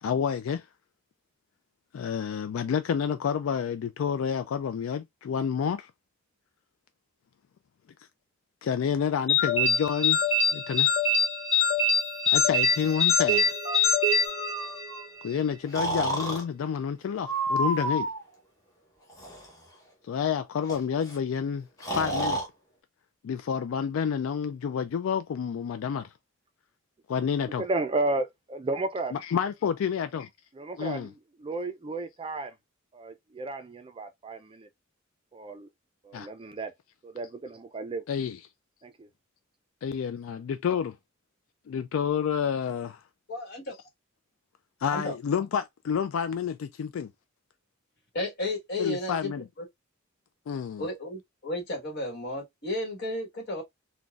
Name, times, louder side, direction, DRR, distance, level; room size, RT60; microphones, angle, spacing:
voice 1, 0.0-0.7 1.9-5.9 8.6-10.2 10.5-10.9 12.3-13.5 15.2-18.1 20.0-22.4 23.2-26.1 27.1-27.6 29.1-30.3 30.8-31.1 36.1-36.3 38.1-38.4 39.8-40.9 41.7-43.0 44.8-47.1 48.8-49.4 50.5-50.9, left 7 dB, 70° left, 0.3 m, -29 dB
sound 1, 9.3-15.0, left 3 dB, 35° left, 1.8 m, -24 dB
Breathing, 14.3-15.0 15.7-16.4 17.3-18.2 19.1-19.5 20.7-20.8 21.0-21.2 21.8-22.5, right 1 dB, 15° left, 0.9 m, -30 dB
voice 2, 27.6-29.1 30.6-31.1 31.4-32.5 32.9-34.7 35.3-35.7 36.0-36.7 37.0-38.0 38.8-39.1, right 2 dB, 25° right, 0.4 m, -33 dB
voice 3, 43.3-43.8 44.9-45.1 48.1-49.3 50.8-53.6, left 2 dB, 55° left, 1.3 m, -33 dB
3.8 x 2.2 x 2.3 m
head